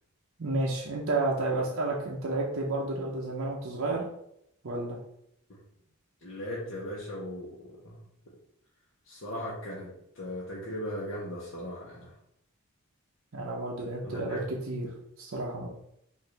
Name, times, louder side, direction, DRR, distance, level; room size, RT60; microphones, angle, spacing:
voice 1, 0.4-4.1 4.6-5.0 13.3-15.7, right 2 dB, 65° right, -3 dB, 0.6 m, -31 dB
voice 2, 6.2-8.0 9.1-12.1 14.0-14.4, left 1 dB, 60° left, -6 dB, 0.8 m, -38 dB
4.9 x 2.6 x 3.2 m, 0.76 s
head